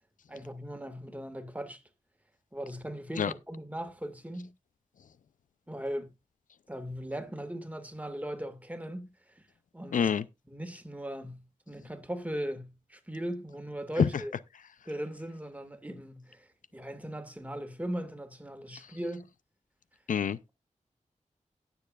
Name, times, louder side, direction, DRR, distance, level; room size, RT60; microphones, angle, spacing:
voice 1, 0.3-1.8 2.5-4.5 5.7-6.1 6.7-9.1 9.7-10.1 10.5-14.3 14.9-16.5 16.7-19.3, right 1 dB, 10° right, 1.9 m, -38 dB
voice 2, 9.9-10.2 14.0-14.1 20.1-20.4, left 7 dB, 85° left, 0.4 m, -25 dB
18.0 x 6.9 x 2.4 m
wide cardioid pair, 80°, 13 cm